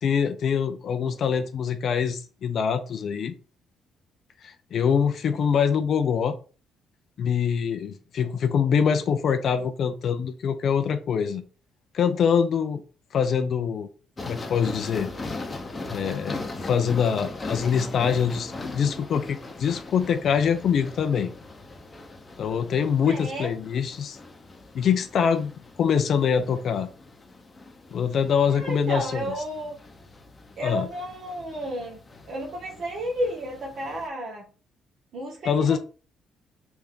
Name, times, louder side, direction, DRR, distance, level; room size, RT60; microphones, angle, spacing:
voice 1, 0.0-3.3 4.4-6.4 7.2-11.4 11.9-12.8 13.1-13.9 14.3-15.1 15.9-21.3 22.4-24.2 24.7-25.5 25.8-26.9 27.9-29.3 30.6-30.9 35.5-35.8, left 7 dB, 60° left, 0.4 m, -24 dB
sound 1, 14.2-34.1, left 2 dB, 30° left, 0.7 m, -40 dB
voice 2, 23.1-23.5 28.5-29.8 30.6-32.0 32.3-34.5 35.1-35.8, equal, 60° right, 1.0 m, -32 dB
3.4 x 2.6 x 3.6 m
supercardioid pair, 70°, 0 cm